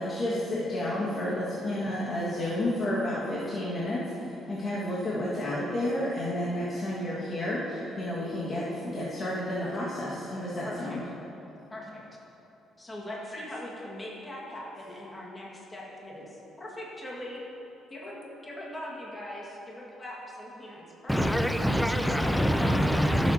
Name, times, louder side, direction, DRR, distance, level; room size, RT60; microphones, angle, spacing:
voice 1, 0.0-4.0 4.5-11.0, left 1 dB, 40° left, -7 dB, 1.8 m, -31 dB
voice 2, 10.6-11.0 11.7-12.0 12.8-17.4 17.9-18.2 18.4-21.3 22.0-23.0, left 1 dB, 20° left, -5 dB, 1.9 m, -40 dB
voice 3, 21.1-23.3, equal, 5° left, 7 dB, 0.6 m, -25 dB
16.0 x 8.0 x 2.9 m, 3.0 s
cardioid pair, 120°, 0 cm